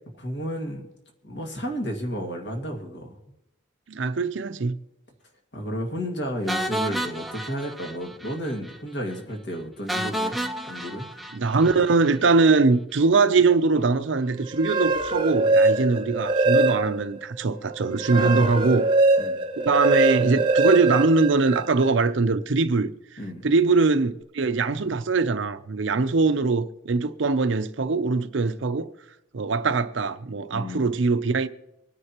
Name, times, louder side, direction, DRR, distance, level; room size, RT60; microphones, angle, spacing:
voice 1, 0.2-0.9 1.2-3.2 5.5-10.4 10.7-11.1 18.1-18.7 19.2-19.4 23.2-23.5 30.5-30.9, equal, 60° left, 2.0 m, -32 dB
voice 2, 3.9-4.8 11.3-18.9 19.6-22.9 23.4-28.9 29.3-31.5, right 4 dB, 75° right, 0.6 m, -22 dB
sound 1, 6.5-8.4 8.6-8.8 9.1-9.2 9.9-12.2, equal, ahead, 0.5 m, -31 dB
sound 2, 14.5-17.1 17.6-21.9, right 2 dB, 25° right, 0.9 m, -22 dB
25.0 x 9.7 x 3.0 m
head